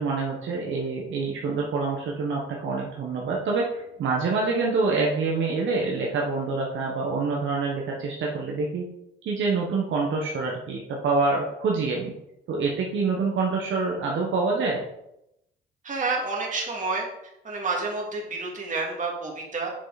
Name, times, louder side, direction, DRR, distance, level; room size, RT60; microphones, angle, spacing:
voice 1, 0.0-8.9 9.2-12.1 12.5-14.8, right 4 dB, 70° right, -2 dB, 1.4 m, -26 dB
voice 2, 15.8-17.1 17.4-19.7, right 3 dB, 40° right, -2 dB, 2.7 m, -29 dB
7.5 x 6.5 x 4.2 m, 0.83 s
cardioid pair, 90°, 20 cm